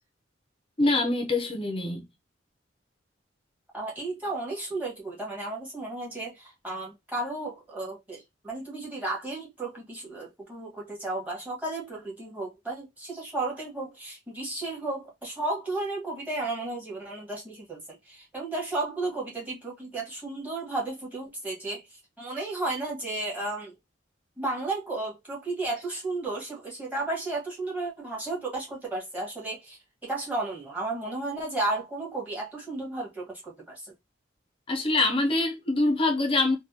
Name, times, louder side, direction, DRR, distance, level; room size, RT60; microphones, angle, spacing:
voice 1, 0.8-2.0 34.7-36.6, left 2 dB, 30° left, 0.6 m, -24 dB
voice 2, 3.7-21.8 22.2-23.7 24.4-33.9, right 2 dB, 10° right, 1.4 m, -33 dB
3.3 x 2.2 x 2.8 m
head